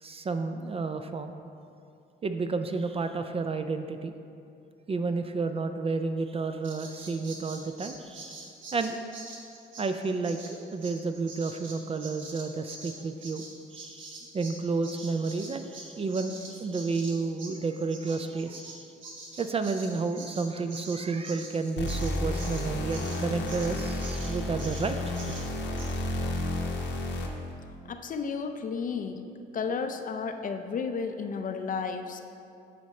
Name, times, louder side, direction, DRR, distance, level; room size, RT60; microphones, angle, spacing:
voice 1, 0.0-1.4 2.2-4.1 4.9-8.4 8.7-9.0 9.8-13.4 13.7-18.8 19.3-25.5, right 4 dB, 30° right, 8 dB, 0.4 m, -31 dB
Bird vocalization bird call bird song, 6.6-14.6 14.8-23.7 24.0-24.3 24.6-24.9 25.2-25.4 25.8-25.9, right 3 dB, 75° right, 1.3 m, -44 dB
sound 1, 21.8-27.5, left 1 dB, 70° left, 0.9 m, -31 dB
voice 2, 27.8-29.2 29.5-32.2, left 5 dB, 45° left, 7 dB, 0.5 m, -32 dB
10.0 x 4.3 x 3.1 m, 2.5 s
cardioid pair, 90°, 20 cm